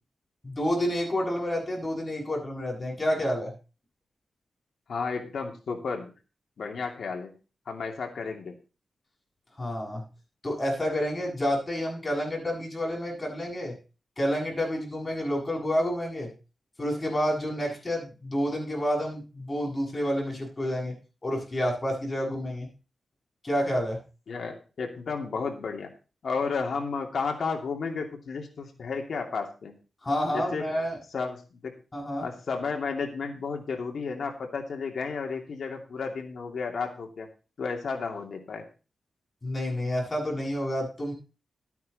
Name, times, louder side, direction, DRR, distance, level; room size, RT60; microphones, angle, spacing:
voice 1, 0.4-3.5 9.6-10.0 10.4-13.7 14.2-16.3 16.8-20.9 21.2-22.7 23.4-24.0 30.0-31.0 31.9-32.3 39.4-41.1, equal, 25° left, -2 dB, 7.9 m, -29 dB
voice 2, 4.9-6.1 6.6-7.3 7.7-8.6 24.3-25.9 26.2-29.7 30.3-30.7 31.1-31.7 32.2-37.3 37.6-38.7, left 5 dB, 70° left, 3 dB, 2.7 m, -32 dB
13.0 x 9.3 x 4.2 m, 0.33 s
wide cardioid pair, 100°, 0 cm